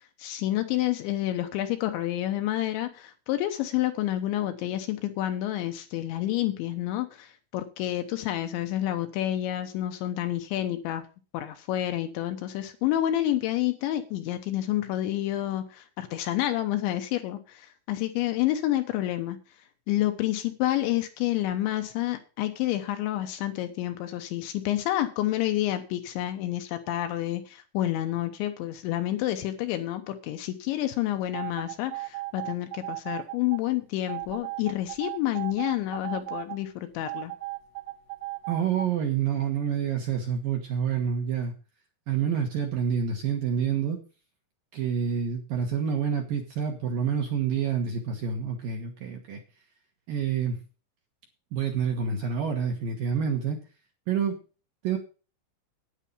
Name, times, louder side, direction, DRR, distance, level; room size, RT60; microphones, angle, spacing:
voice 1, 0.0-11.1 11.3-19.4 19.9-37.3, left 14 dB, 75° left, 7 dB, 3.0 m, -29 dB
sound 1, 31.3-33.6 34.1-36.6 37.1-38.8, right 20 dB, 85° right, 3.8 m, -36 dB
voice 2, 38.5-41.5 42.1-44.0 44.7-49.4 50.1-50.6 51.5-53.6 54.1-54.4 54.8-55.0, right 7 dB, 65° right, 2 dB, 2.4 m, -28 dB
10.0 x 9.6 x 5.5 m, 0.35 s
omnidirectional pair, 5.8 m